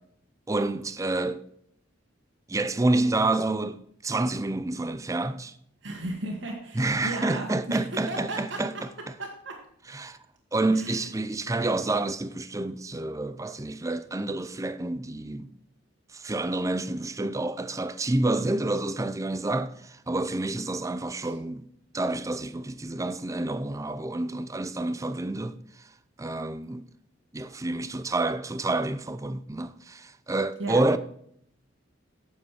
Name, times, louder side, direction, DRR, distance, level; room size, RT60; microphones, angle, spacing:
voice 1, 0.5-1.4 2.5-5.5 6.7-9.1 9.9-10.2 10.5-15.5 16.1-25.9 26.2-26.9 27.3-31.0, right 2 dB, 15° right, 0.5 m, -28 dB
voice 2, 5.8-7.8 8.1-8.6 9.2-9.5 10.8-11.0 21.2-21.3 30.6-30.8, right 2 dB, 65° right, 1.7 m, -35 dB
9.0 x 6.6 x 4.6 m
head